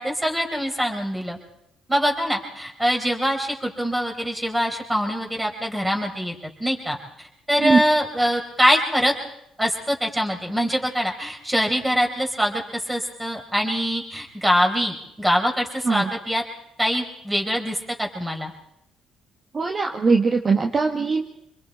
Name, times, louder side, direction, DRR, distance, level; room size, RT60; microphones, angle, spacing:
voice 1, 0.0-1.4 1.9-6.3 6.6-9.1 9.6-16.4 16.8-18.5, equal, 10° right, 2 dB, 4.3 m, -24 dB
voice 2, 19.5-21.2, right 4 dB, 35° right, 3 dB, 1.4 m, -20 dB
26.5 x 22.0 x 4.5 m, 0.80 s
cardioid pair, 80°, 0 cm